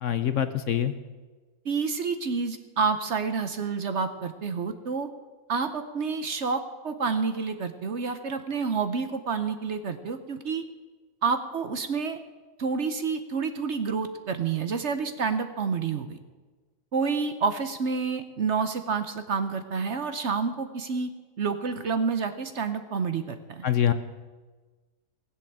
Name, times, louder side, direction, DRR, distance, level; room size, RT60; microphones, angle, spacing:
voice 1, 0.0-0.9 23.6-23.9, left 10 dB, 60° left, 10 dB, 1.0 m, -24 dB
voice 2, 1.6-5.1 5.5-10.6 11.2-12.2 12.6-16.2 16.9-21.1 21.4-23.6, right 5 dB, 55° right, 9 dB, 1.0 m, -29 dB
18.5 x 7.7 x 7.3 m, 1.3 s
omnidirectional pair, 1.7 m